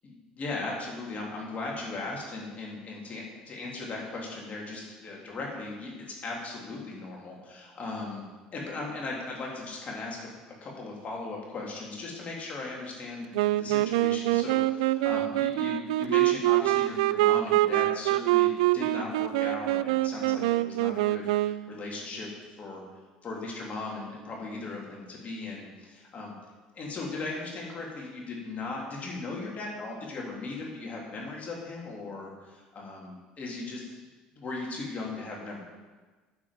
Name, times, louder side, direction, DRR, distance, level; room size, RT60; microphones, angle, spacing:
voice 1, 0.0-5.9 6.2-8.2 8.5-10.3 10.6-22.3 22.6-22.8 23.2-26.3 26.8-34.0 34.3-35.6, left 3 dB, 40° left, -2 dB, 3.4 m, -37 dB
Wind instrument woodwind instrument, 13.3-21.8, right 17 dB, 70° right, 0.3 m, -25 dB
9.6 x 7.2 x 7.5 m, 1.3 s
hypercardioid pair, 65°, 4 cm